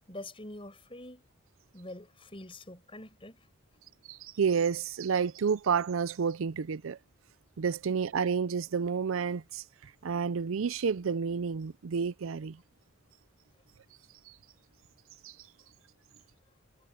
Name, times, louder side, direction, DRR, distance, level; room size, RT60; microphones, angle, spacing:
voice 1, 0.1-1.2 1.7-3.4, left 1 dB, 25° left, 5.3 m, -45 dB
voice 2, 4.1-7.0 7.6-12.6 15.2-15.3, right 6 dB, 80° right, 0.5 m, -30 dB
head